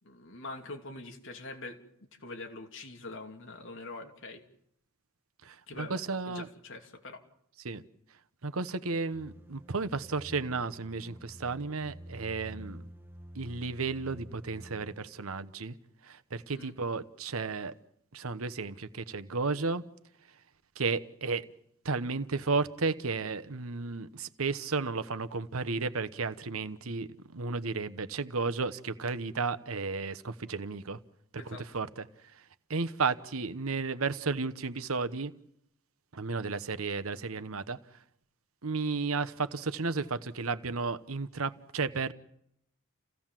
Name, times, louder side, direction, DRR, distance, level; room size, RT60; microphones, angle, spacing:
voice 1, 0.0-1.8 2.2-4.4 5.7-7.2 16.5-16.7 31.4-31.7, left 2 dB, 65° left, 2.9 m, -44 dB
voice 2, 5.4-6.5 7.6-7.8 8.4-12.9 13.3-15.7 16.0-17.7 18.1-19.8 20.8-21.5 21.8-31.0 31.3-32.1 32.3-32.4 32.7-35.3 36.1-37.8 38.6-42.1, right 4 dB, 85° right, 1.1 m, -33 dB
sound 1, 9.1-15.1, equal, 10° right, 1.2 m, -49 dB
29.0 x 16.0 x 7.5 m
head